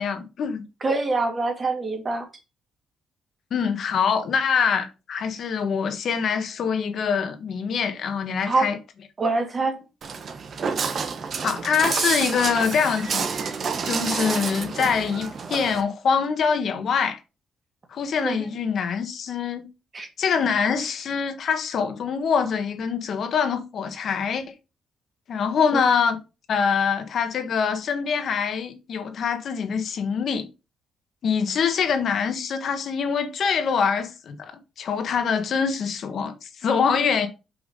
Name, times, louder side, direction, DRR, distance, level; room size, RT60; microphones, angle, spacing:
voice 1, 0.0-0.6 3.5-8.8 11.4-13.5 13.8-17.2 17.9-19.7 20.2-24.4 25.3-26.2 26.5-30.4 31.2-37.3, left 6 dB, 60° left, 1.5 m, -24 dB
voice 2, 0.8-2.2 8.5-8.7 9.2-9.7 18.2-18.3 19.9-20.1, right 3 dB, 35° right, 2.7 m, -24 dB
Walk footsteps, 10.0-15.8, right 5 dB, 50° right, 1.3 m, -29 dB
5.8 x 5.5 x 5.4 m
cardioid pair, 90°, 0 cm